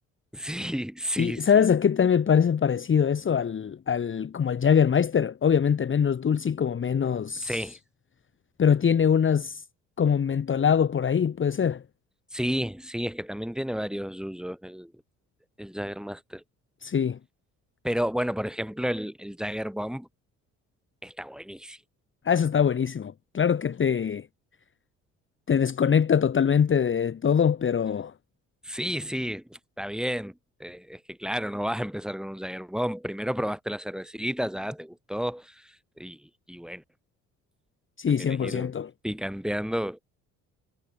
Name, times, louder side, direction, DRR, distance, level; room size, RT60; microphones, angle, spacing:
voice 1, 0.3-1.7 7.4-7.8 12.3-14.9 15.6-16.4 17.8-20.1 21.0-21.8 28.6-30.3 30.6-36.8 38.3-38.7 39.0-40.0, equal, ahead, 5.6 m, -32 dB
voice 2, 1.2-7.6 8.6-9.6 10.0-11.8 16.8-17.2 22.2-24.3 25.5-28.1 38.0-38.9, left 7 dB, 30° left, 1.3 m, -23 dB
hypercardioid pair, 55°, 40 cm